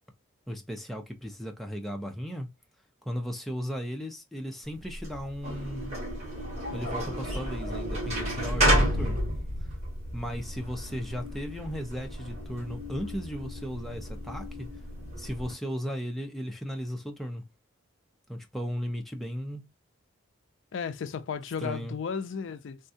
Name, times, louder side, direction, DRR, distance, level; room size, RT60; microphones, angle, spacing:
voice 1, 0.5-2.5 3.0-6.0 6.7-9.2 10.1-14.7 15.2-17.4 18.3-19.7 21.6-21.9, equal, ahead, 0.5 m, -36 dB
sound 1, 4.8-15.5, equal, 35° right, 1.7 m, -31 dB
voice 2, 20.7-22.8, left 6 dB, 65° left, 0.4 m, -34 dB
3.5 x 2.2 x 2.6 m
head